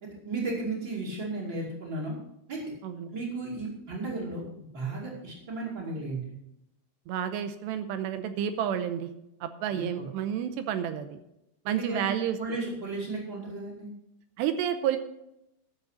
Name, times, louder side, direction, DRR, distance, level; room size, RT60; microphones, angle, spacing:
voice 1, 0.0-2.2 2.5-2.6 3.1-4.4 4.7-6.3 9.7-10.0 11.7-12.1 12.4-13.9, right 2 dB, 30° right, -5 dB, 2.6 m, -34 dB
voice 2, 7.1-9.1 9.4-11.2 11.7-12.4 14.4-15.0, right 9 dB, 80° right, 10 dB, 2.8 m, -30 dB
12.5 x 7.4 x 6.5 m, 0.83 s
omnidirectional pair, 5.2 m